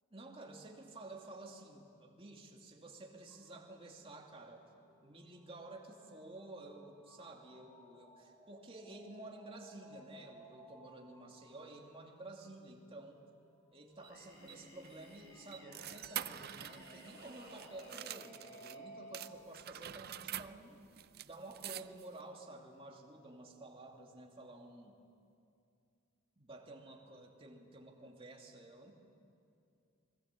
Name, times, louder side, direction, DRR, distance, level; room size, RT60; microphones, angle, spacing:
voice 1, 0.1-4.6 5.0-13.2 13.7-20.8 21.2-25.0 26.4-29.0, right 2 dB, 25° right, 1 dB, 2.6 m, -52 dB
sound 1, 3.3-12.6 13.3-13.5 15.0-19.4, right 1 dB, 10° left, 2.2 m, -59 dB
Singing, 14.0-19.9, left 1 dB, 65° left, 4.4 m, -59 dB
sound 2, 14.0-18.8 19.1-22.2, right 11 dB, 50° right, 0.6 m, -47 dB
28.5 x 20.5 x 8.5 m, 2.5 s
head